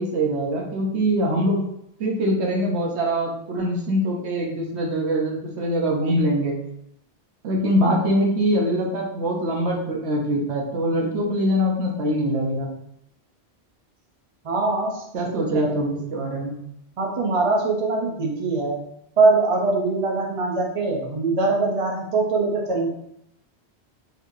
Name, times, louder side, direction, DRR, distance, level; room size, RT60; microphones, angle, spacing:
voice 1, 0.0-1.6 2.0-6.5 7.4-12.7 15.1-16.5, equal, 80° right, -1 dB, 1.2 m, -23 dB
voice 2, 14.4-15.7 17.0-18.8 19.2-22.9, right 3 dB, 35° right, -1 dB, 0.7 m, -22 dB
4.4 x 3.1 x 2.7 m, 0.76 s
omnidirectional pair, 1.1 m